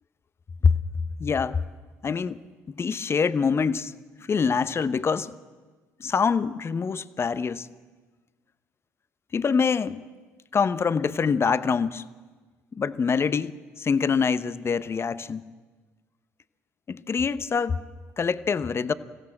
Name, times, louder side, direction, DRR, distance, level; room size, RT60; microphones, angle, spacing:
voice 1, 1.2-1.6 2.0-2.4 2.7-3.9 4.3-5.3 6.0-7.7 9.3-10.0 10.5-12.0 12.7-15.4 16.9-17.8 18.2-18.9, left 5 dB, 35° left, 0.9 m, -25 dB
25.5 x 16.0 x 7.7 m
hypercardioid pair, 60°, 7 cm